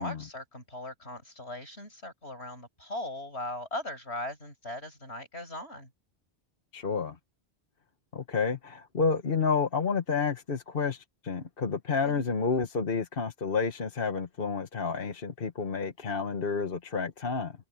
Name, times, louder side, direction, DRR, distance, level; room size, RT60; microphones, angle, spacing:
voice 1, 0.0-5.9 12.0-12.3, left 1 dB, 85° left, 8.3 m, -39 dB
voice 2, 6.7-7.2 8.1-17.5, left 5 dB, 60° left, 1.4 m, -30 dB
omnidirectional pair, 1.1 m